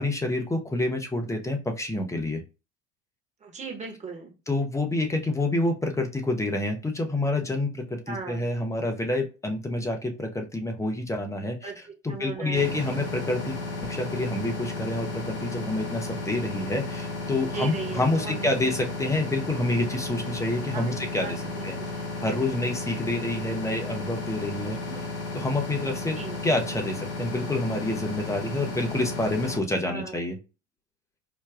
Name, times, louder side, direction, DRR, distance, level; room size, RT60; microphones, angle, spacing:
voice 1, 0.0-2.4 4.5-11.7 12.0-21.4 21.6-21.8 22.2-24.8 25.3-26.2 26.4-30.4, left 2 dB, 10° left, 3 dB, 0.6 m, -28 dB
voice 2, 3.4-4.3 5.6-5.7 8.1-8.5 11.6-13.0 17.5-18.7 20.7-22.1 23.0-23.1 23.4-23.6 24.8-25.1 26.2-26.4 29.8-30.2, right 5 dB, 20° right, 1 dB, 1.1 m, -38 dB
sound 1, 12.5-29.6, left 3 dB, 60° left, 1.7 m, -34 dB
4.9 x 2.2 x 2.4 m, 0.30 s
figure-of-eight pair, 80°, 39 cm